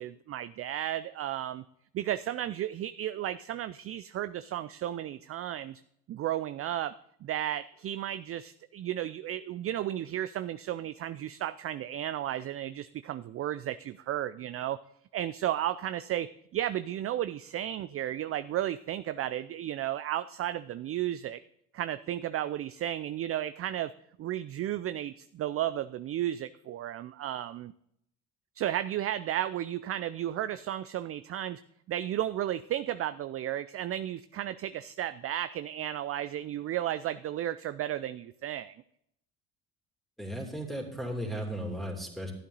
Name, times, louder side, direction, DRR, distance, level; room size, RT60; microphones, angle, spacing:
voice 1, 0.0-1.6 1.9-5.8 6.1-14.8 15.1-21.4 21.7-23.9 24.2-27.7 28.6-31.6 31.9-38.8, right 12 dB, 40° right, 13 dB, 0.4 m, -33 dB
voice 2, 40.2-42.3, equal, ahead, 1 dB, 2.8 m, -35 dB
12.5 x 8.3 x 3.9 m, 0.73 s
supercardioid pair, 75°, 37 cm